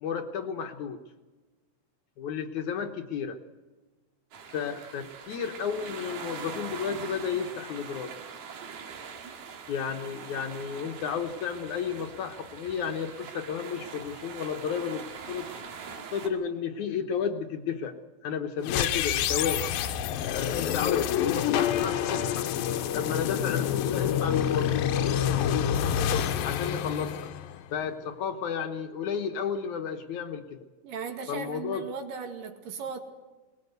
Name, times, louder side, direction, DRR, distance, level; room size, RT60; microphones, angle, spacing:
voice 1, 0.0-1.0 2.2-3.4 4.5-8.1 9.7-15.5 16.1-18.0 18.2-19.6 20.3-22.5 22.9-24.8 26.4-27.3 27.7-30.6 31.3-31.8, left 7 dB, 65° left, 5 dB, 2.3 m, -32 dB
sound 1, 4.3-16.3, right 6 dB, 85° right, 3.9 m, -42 dB
sound 2, 18.6-27.9, left 9 dB, 80° left, 2.7 m, -27 dB
voice 2, 30.8-33.0, right 5 dB, 70° right, 4 dB, 3.7 m, -37 dB
22.0 x 20.0 x 8.1 m, 1.2 s
omnidirectional pair, 4.1 m